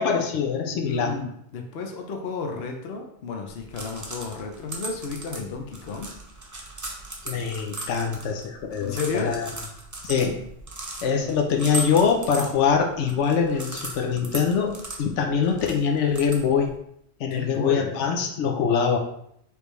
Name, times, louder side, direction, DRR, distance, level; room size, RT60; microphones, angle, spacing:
voice 1, 0.0-1.1 7.2-9.5 10.0-10.4 11.0-14.7 15.0-16.7 17.2-19.0, left 6 dB, 90° left, 2 dB, 1.0 m, -23 dB
voice 2, 0.9-6.2 8.8-9.4 17.3-17.9, left 4 dB, 60° left, 2 dB, 0.9 m, -32 dB
sound 1, 3.5-16.8, right 2 dB, 20° right, 0.6 m, -38 dB
4.9 x 3.4 x 3.2 m, 0.72 s
omnidirectional pair, 1.2 m